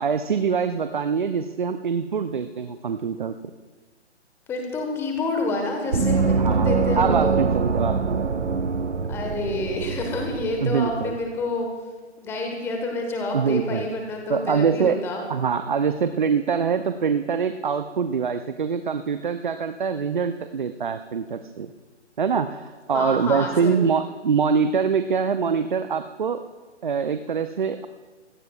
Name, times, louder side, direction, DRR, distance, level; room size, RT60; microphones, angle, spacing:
voice 1, 0.0-3.3 6.4-8.3 10.6-11.2 13.3-13.9 14.3-15.0 15.3-21.7 22.2-26.4 26.8-27.9, right 6 dB, 45° right, 10 dB, 0.6 m, -24 dB
voice 2, 4.5-7.4 9.1-11.7 12.2-15.2 22.9-23.9, left 2 dB, 5° left, 2 dB, 1.3 m, -28 dB
Gong, 5.9-11.2, right 5 dB, 75° right, 0.9 m, -24 dB
27.0 x 17.0 x 2.4 m, 1.3 s
figure-of-eight pair, 140°, 35 cm